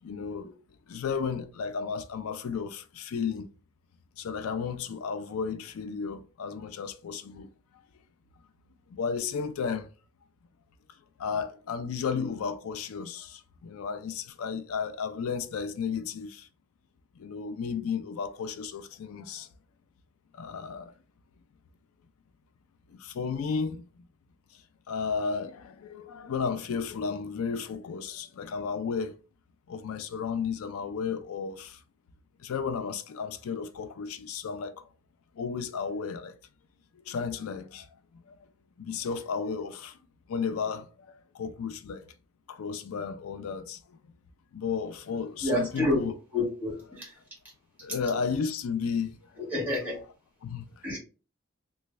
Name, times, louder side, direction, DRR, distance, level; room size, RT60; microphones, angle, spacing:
voice 1, 0.0-0.6 0.9-3.5 4.2-7.5 8.9-9.9 11.2-16.5 17.1-19.5 20.3-20.9 22.9-24.1 24.5-29.2 29.7-31.8 32.4-34.9 35.3-36.4 37.1-37.9 38.3-38.4 38.8-40.0 40.3-42.0 42.5-44.0 44.5-46.1 47.8-49.3 50.4-51.0, left 6 dB, 90° left, 0.4 m, -33 dB
voice 2, 45.4-46.0 46.3-47.1 49.4-50.0 50.8-51.0, left 2 dB, 10° right, 1.5 m, -28 dB
3.1 x 2.2 x 3.3 m
head